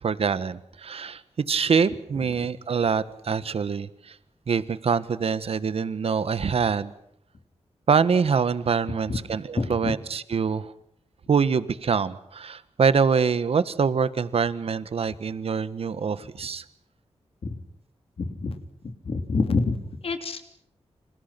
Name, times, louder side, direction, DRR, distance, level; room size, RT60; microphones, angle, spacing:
voice 1, 0.0-1.2 1.5-4.2 4.5-6.9 7.9-10.7 11.3-16.6, right 6 dB, 65° right, 14 dB, 1.5 m, -25 dB
voice 2, 9.6-9.9 17.4-17.6 18.2-18.6 19.0-19.8 20.0-20.4, left 3 dB, 60° left, 7 dB, 3.2 m, -27 dB
29.0 x 26.5 x 6.0 m, 0.72 s
wide cardioid pair, 140°, 11 cm